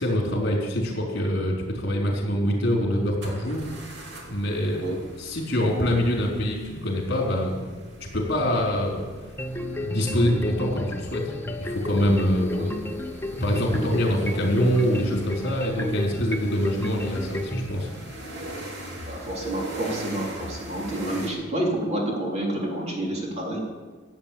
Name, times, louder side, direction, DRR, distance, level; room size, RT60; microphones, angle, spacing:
voice 1, 0.0-3.6 4.3-4.8 5.2-7.6 8.1-9.0 9.8-12.7 13.4-17.9, equal, 50° left, -1 dB, 4.3 m, -25 dB
sound 1, 3.2-21.3, right 1 dB, 55° right, 2.8 m, -41 dB
sound 2, 9.4-17.7, left 1 dB, 10° left, 0.9 m, -33 dB
voice 2, 19.1-23.6, right 1 dB, 30° right, -1 dB, 3.3 m, -29 dB
14.5 x 8.4 x 8.8 m, 1.4 s
head